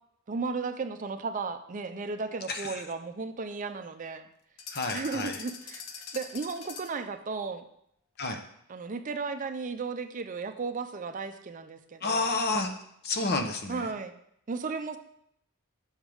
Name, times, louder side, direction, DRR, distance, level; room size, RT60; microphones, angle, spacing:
voice 1, 0.3-4.3 4.9-5.8 6.1-7.6 8.7-12.3 13.7-14.1 14.5-15.0, right 4 dB, 35° right, 9 dB, 0.4 m, -35 dB
voice 2, 2.5-2.8 4.7-5.4 8.2-8.4 12.0-12.7 13.0-13.9, left 3 dB, 45° left, 6 dB, 0.7 m, -30 dB
sound 1, 4.6-7.1, left 6 dB, 90° left, 0.7 m, -43 dB
7.2 x 3.4 x 6.1 m, 0.73 s
head